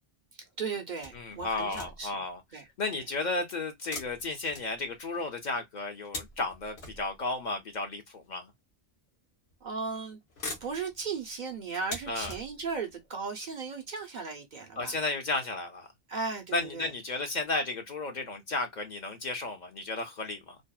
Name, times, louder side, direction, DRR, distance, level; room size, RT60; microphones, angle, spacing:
voice 1, 0.6-2.2 2.5-2.7 9.6-10.2 10.6-15.0 16.1-16.9, right 5 dB, 55° right, 0.6 m, -36 dB
sound 1, 1.0-2.3 3.8-5.2 5.8-7.4 8.3-8.4 9.5-9.9 10.2-12.9 13.6-13.7 14.0-14.1, left 3 dB, 80° left, 1.0 m, -43 dB
voice 2, 1.1-2.4 2.8-8.5 12.1-12.3 14.8-15.9 16.5-20.6, left 3 dB, 50° left, 0.6 m, -33 dB
2.6 x 2.1 x 2.2 m
omnidirectional pair, 1.1 m